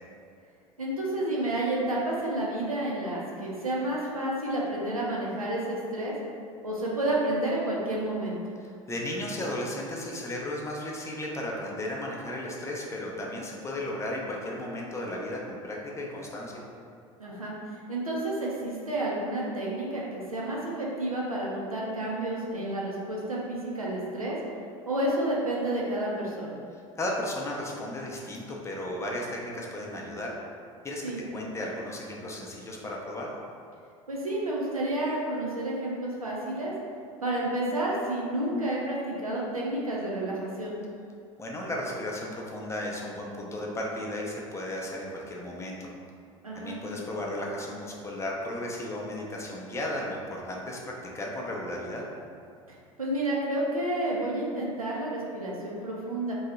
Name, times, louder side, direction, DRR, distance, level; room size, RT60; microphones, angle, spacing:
voice 1, 0.8-6.1 6.6-8.4 17.2-24.4 24.8-26.5 31.0-31.2 34.1-36.7 37.2-40.8 46.4-46.8 52.7-56.4, right 1 dB, 90° right, -4 dB, 0.6 m, -30 dB
voice 2, 8.6-16.6 27.0-30.3 30.8-33.3 41.4-45.9 46.6-52.0, left 1 dB, 15° left, -2 dB, 0.6 m, -35 dB
2.7 x 2.3 x 4.0 m, 2.4 s
figure-of-eight pair, 75°, 18 cm